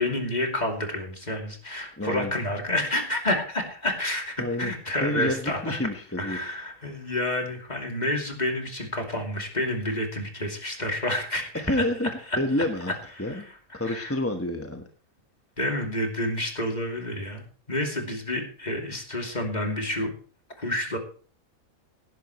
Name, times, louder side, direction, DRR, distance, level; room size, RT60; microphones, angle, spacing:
voice 1, 0.0-5.8 6.2-11.8 12.3-12.4 13.2-14.2 15.6-20.1 20.6-21.0, left 1 dB, 30° left, 3 dB, 2.8 m, -29 dB
voice 2, 2.0-2.3 4.4-4.7 5.0-6.4 11.5-12.1 12.4-12.9 13.2-13.5 13.7-14.8, left 1 dB, 10° left, 5 dB, 1.0 m, -28 dB
18.5 x 11.0 x 3.1 m, 0.41 s
omnidirectional pair, 1.5 m